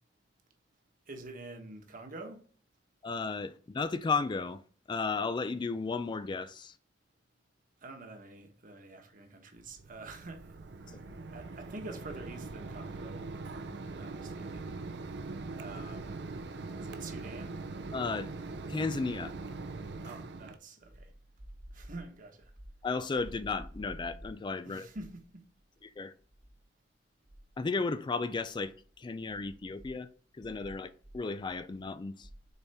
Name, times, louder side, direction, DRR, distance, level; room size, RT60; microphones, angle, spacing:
voice 1, 1.1-2.5 7.8-10.5 11.3-14.8 15.6-16.1 16.7-17.5 20.0-21.1 21.7-22.5 24.6-25.4, right 2 dB, 50° right, 1.2 m, -47 dB
voice 2, 3.0-4.6 4.9-6.8 10.9-11.0 17.9-18.3 18.7-19.3 22.8-24.9 25.8-26.1 27.6-30.1 30.4-32.3, left 4 dB, 25° left, 0.3 m, -34 dB
Mechanisms, 9.6-20.6, right 3 dB, 70° right, 0.6 m, -42 dB
6.8 x 4.3 x 3.5 m
head